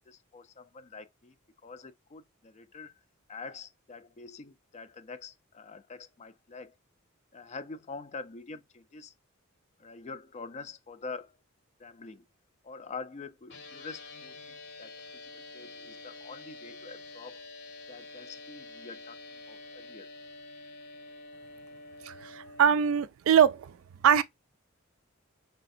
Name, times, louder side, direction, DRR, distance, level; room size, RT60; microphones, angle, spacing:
voice 1, 0.0-1.4 1.6-2.9 3.3-6.8 7.3-9.1 9.8-11.3 11.8-12.2 12.6-14.9 15.2-17.4 17.9-19.2 19.5-20.1, left 4 dB, 35° left, 0.4 m, -45 dB
sound 1, 13.5-22.8, left 3 dB, 55° left, 0.9 m, -47 dB
voice 2, 22.0-23.8 24.0-24.2, right 8 dB, 65° right, 0.4 m, -23 dB
4.9 x 3.3 x 2.5 m
head